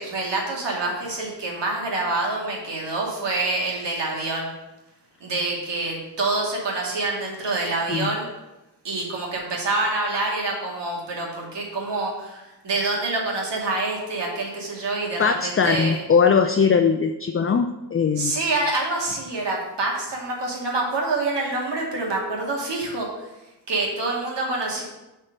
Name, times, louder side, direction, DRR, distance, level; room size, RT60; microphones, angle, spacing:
voice 1, 0.0-4.5 5.2-8.3 8.8-16.0 18.2-23.1 23.7-24.8, right 2 dB, 75° right, -2 dB, 2.4 m, -26 dB
voice 2, 15.2-18.3, left 6 dB, 30° left, 6 dB, 0.5 m, -20 dB
7.4 x 4.5 x 6.5 m, 0.99 s
cardioid pair, 60°, 43 cm